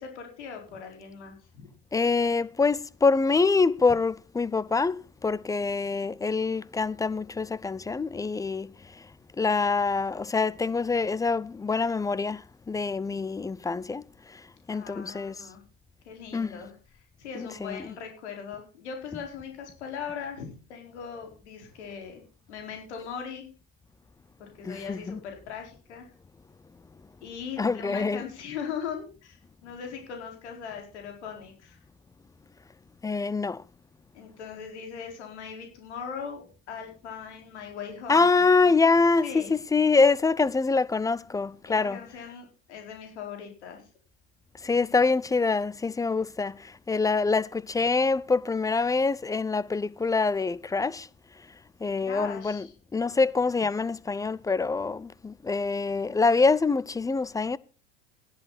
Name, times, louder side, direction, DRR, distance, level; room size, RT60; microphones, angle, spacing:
voice 1, 0.0-1.7 14.7-15.6 16.0-22.2 22.5-23.5 24.4-26.1 27.2-29.4 29.6-31.8 34.1-38.2 39.0-39.5 41.6-43.9 51.8-52.7, left 7 dB, 90° left, 4.6 m, -40 dB
voice 2, 1.9-8.7 9.4-14.0 14.7-15.3 16.3-16.6 17.3-17.9 24.6-25.2 27.6-28.3 33.0-33.6 38.1-42.0 44.6-46.6 46.9-51.1 51.8-52.7 52.9-57.6, left 4 dB, 10° left, 0.5 m, -25 dB
14.5 x 10.5 x 4.1 m
supercardioid pair, 110°, 33 cm